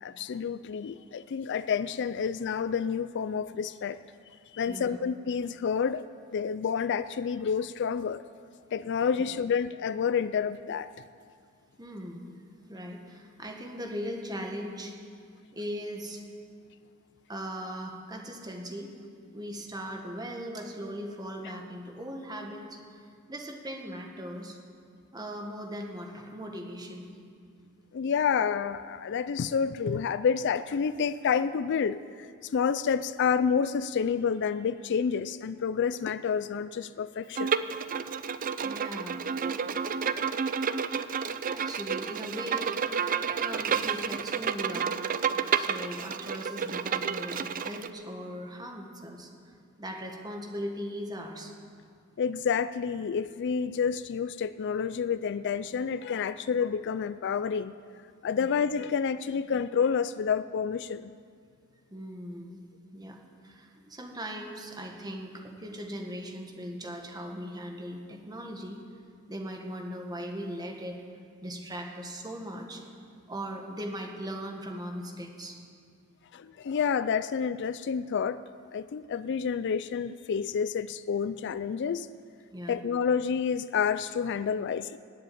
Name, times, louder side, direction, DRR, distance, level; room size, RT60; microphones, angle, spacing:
voice 1, 0.0-4.0 4.5-6.0 6.3-8.2 8.7-10.9 27.9-37.6 52.2-57.7 58.2-61.1 76.3-78.4 78.7-82.1 82.7-85.0, left 6 dB, 55° left, 14 dB, 0.4 m, -29 dB
voice 2, 4.6-5.0 11.8-12.3 12.7-14.9 15.5-16.2 17.3-18.9 19.3-23.0 23.3-24.6 25.1-27.1 38.6-39.2 41.5-42.9 43.3-45.0 45.6-49.3 49.8-51.5 58.4-58.5 61.9-62.6 62.9-63.2 63.4-68.8 69.3-71.0 71.4-72.8 73.3-75.6 82.5-82.8, equal, 20° right, 2 dB, 1.6 m, -39 dB
Bowed string instrument, 37.3-47.9, right 6 dB, 40° right, 0.5 m, -30 dB
18.0 x 7.6 x 9.2 m, 2.2 s
head